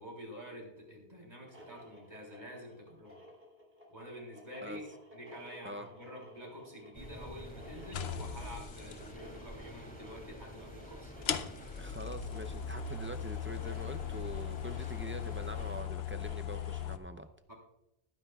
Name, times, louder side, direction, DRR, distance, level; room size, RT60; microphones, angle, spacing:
voice 1, 0.0-3.2 3.9-4.8 5.1-11.4 17.5-17.6, equal, 45° right, -1 dB, 3.6 m, -48 dB
sound 1, 1.3-17.0, equal, 65° right, 3.8 m, -56 dB
sound 2, 6.9-15.8, left 1 dB, 10° left, 2.8 m, -49 dB
sound 3, 7.9-9.0 10.3-10.4 11.2-17.0, left 9 dB, 80° left, 0.9 m, -38 dB
voice 2, 11.8-17.3, right 1 dB, 20° right, 8 dB, 0.3 m, -44 dB
19.0 x 9.9 x 2.3 m, 0.86 s
omnidirectional pair, 1.1 m